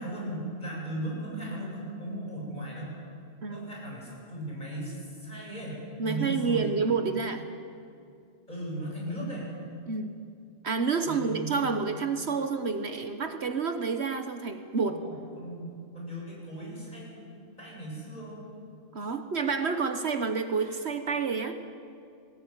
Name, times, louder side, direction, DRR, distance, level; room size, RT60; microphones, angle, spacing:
voice 1, 0.0-3.0 3.5-7.1 8.5-9.5 11.1-11.5 14.8-18.4, right 1 dB, 35° left, -3 dB, 7.9 m, -37 dB
voice 2, 6.0-7.5 9.9-10.1 10.6-15.0 18.9-21.6, right 5 dB, 60° right, 7 dB, 1.4 m, -29 dB
21.5 x 18.5 x 9.6 m, 2.4 s
omnidirectional pair, 1.3 m